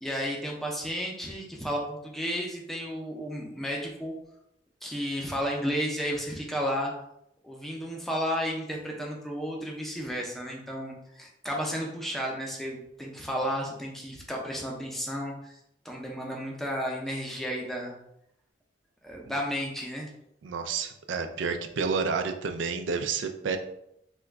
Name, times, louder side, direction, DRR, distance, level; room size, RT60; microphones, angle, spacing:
voice 1, 0.0-4.1 4.8-6.9 7.4-15.5 15.8-18.0 19.0-20.1, equal, ahead, -1 dB, 0.5 m, -33 dB
voice 2, 20.4-23.6, right 5 dB, 80° right, 7 dB, 0.4 m, -30 dB
3.0 x 2.3 x 3.4 m, 0.78 s
head